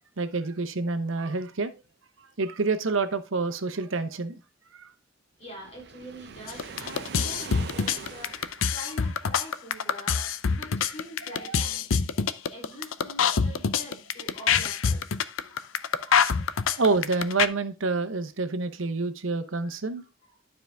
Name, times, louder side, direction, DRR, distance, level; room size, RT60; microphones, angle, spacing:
voice 1, 0.2-1.7 2.2-4.4 4.7-4.9 11.2-11.6 16.1-16.2 16.8-20.0, right 3 dB, 80° right, 0.9 m, -28 dB
voice 2, 5.4-11.9 12.5-15.1 19.6-20.3, equal, 35° left, 3.2 m, -45 dB
Waves surf, 5.6-9.1, right 5 dB, 55° right, 0.5 m, -42 dB
sound 1, 6.5-17.5, left 6 dB, 85° left, 0.5 m, -25 dB
11.5 x 4.9 x 3.5 m
head